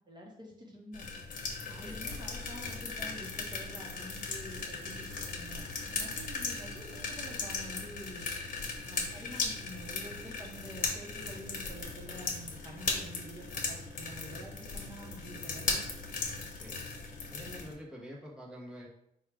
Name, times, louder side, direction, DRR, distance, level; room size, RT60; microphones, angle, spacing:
voice 1, 0.1-1.1 1.7-8.2 8.8-15.8, equal, 25° right, -1 dB, 1.0 m, -48 dB
sound 1, 0.9-17.7, left 4 dB, 60° left, 1.0 m, -38 dB
voice 2, 1.6-2.1 16.5-16.9 17.3-18.9, equal, 5° right, -4 dB, 1.0 m, -47 dB
4.6 x 2.4 x 4.7 m, 0.77 s
wide cardioid pair, 155°, 16 cm